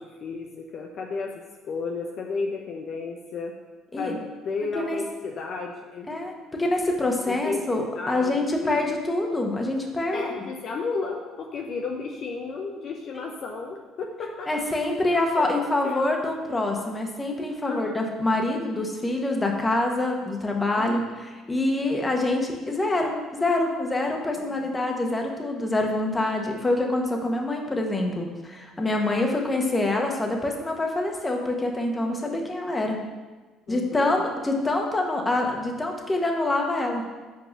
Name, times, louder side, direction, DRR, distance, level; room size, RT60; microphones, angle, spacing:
voice 1, 0.0-1.3 1.7-3.5 4.0-4.2 4.4-6.1 7.3-8.3 8.6-8.8 10.1-14.5 15.1-15.5 15.8-16.0 17.6-18.0 20.8-21.0 24.4-24.7 33.7-34.2, left 4 dB, 55° left, 1 dB, 0.8 m, -33 dB
voice 2, 6.1-10.2 14.5-33.0 33.7-37.0, left 2 dB, 20° left, 2 dB, 1.5 m, -26 dB
6.4 x 4.7 x 6.6 m, 1.3 s
hypercardioid pair, 60°, 0 cm